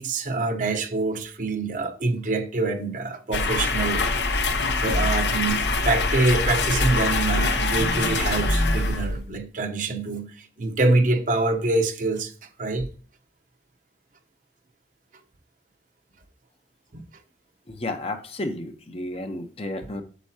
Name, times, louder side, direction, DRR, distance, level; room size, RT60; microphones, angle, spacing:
voice 1, 0.0-4.1 4.8-12.3 12.6-12.9 16.9-17.0, right 2 dB, 45° right, 0.8 m, -25 dB
sound 1, 3.3-9.4, left 3 dB, 75° left, 0.9 m, -24 dB
voice 2, 17.7-20.0, left 1 dB, 35° left, 0.8 m, -32 dB
8.1 x 6.8 x 2.8 m
head